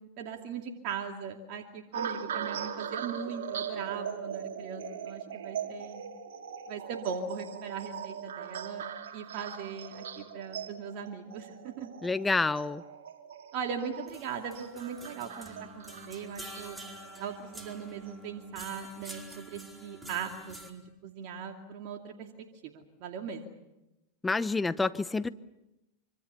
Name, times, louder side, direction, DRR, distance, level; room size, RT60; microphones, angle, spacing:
voice 1, 0.0-6.1 6.7-8.8 9.1-11.9 13.5-16.8 17.2-22.3 22.6-23.6, right 6 dB, 55° right, 2 dB, 2.6 m, -39 dB
sound 1, 1.9-18.4 19.0-19.3, right 7 dB, 75° right, 3.1 m, -41 dB
voice 2, 12.0-12.8 24.2-25.3, left 3 dB, 10° left, 15 dB, 0.9 m, -28 dB
sound 2, 14.1-20.7, right 2 dB, 10° right, 4.9 m, -47 dB
26.0 x 25.5 x 7.0 m, 0.96 s
hypercardioid pair, 105°, 0 cm